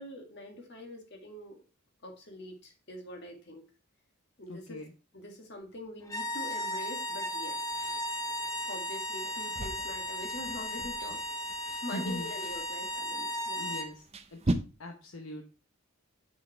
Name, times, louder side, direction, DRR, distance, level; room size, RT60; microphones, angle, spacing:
voice 1, 0.0-1.6 2.0-3.6 4.4-4.8 5.1-7.9 8.7-13.8, left 1 dB, 50° left, 4 dB, 1.8 m, -44 dB
voice 2, 4.5-4.9 11.9-12.3 13.6-14.0 14.3-14.4 14.8-15.4, left 1 dB, 70° left, 3 dB, 1.0 m, -40 dB
sound 1, 6.0-13.9, equal, 15° left, 0.7 m, -35 dB
sound 2, 7.7-14.5, right 2 dB, 30° right, 0.5 m, -40 dB
6.5 x 5.9 x 4.5 m, 0.33 s
head